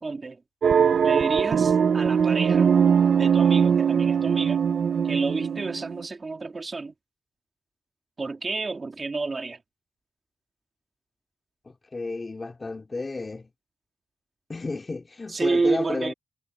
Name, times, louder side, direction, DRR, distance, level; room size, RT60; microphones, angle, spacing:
voice 1, 0.0-0.4 1.0-2.7 3.1-4.6 5.0-6.9 8.2-9.6 15.3-16.1, right 3 dB, 25° right, 3.0 m, -29 dB
sound 1, 0.6-6.0, right 7 dB, 50° right, 0.6 m, -21 dB
voice 2, 11.7-13.5 14.5-16.1, left 3 dB, 25° left, 2.7 m, -32 dB
wide cardioid pair, 135°, 0 cm